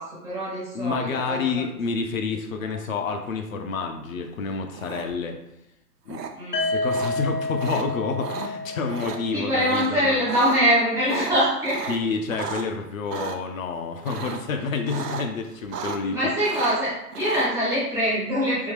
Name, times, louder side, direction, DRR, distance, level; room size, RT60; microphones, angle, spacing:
voice 1, 0.0-1.6 2.6-2.7 6.3-6.7 9.3-11.9 16.1-18.7, equal, 5° right, -8 dB, 0.5 m, -24 dB
voice 2, 0.7-5.4 6.1-6.2 6.6-10.2 11.9-16.3, left 4 dB, 60° left, 4 dB, 0.6 m, -29 dB
sound 1, 4.7-5.3 6.1-6.3 6.9-7.1 7.6-7.8 8.2-8.5 8.9-9.2 9.6-9.9 10.2-10.6 11.0-12.7 13.1-13.4 14.0-14.5 14.8-15.3 15.5-16.2 16.4-17.5, right 6 dB, 85° right, 0.6 m, -34 dB
sound 2, 6.5-10.4, left 2 dB, 80° left, 1.0 m, -30 dB
3.6 x 2.7 x 3.2 m, 0.84 s
figure-of-eight pair, 115°, 47 cm